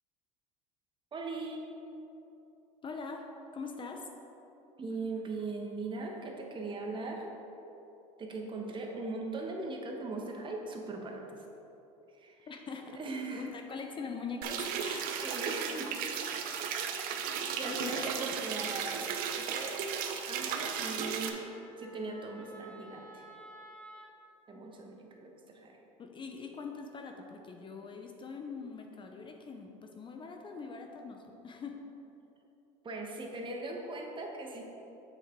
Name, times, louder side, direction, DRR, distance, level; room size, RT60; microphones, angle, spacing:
voice 1, 1.1-1.6 4.8-7.3 8.2-11.2 12.1-12.5 12.9-13.5 15.2-15.9 17.5-19.8 20.2-21.4 21.8-23.2 24.5-25.8 32.8-34.6, right 3 dB, 30° right, 1 dB, 1.3 m, -39 dB
voice 2, 2.8-4.1 12.5-13.0 13.3-15.2 17.2-18.1 18.3-18.4 26.0-31.8, left 4 dB, 30° left, 3 dB, 0.7 m, -43 dB
sound 1, 14.4-21.3, right 7 dB, 65° right, 0.8 m, -35 dB
Wind instrument woodwind instrument, 18.9-24.1, right 1 dB, 5° left, 1.9 m, -55 dB
7.4 x 6.5 x 4.6 m, 3.0 s
supercardioid pair, 100°, 16 cm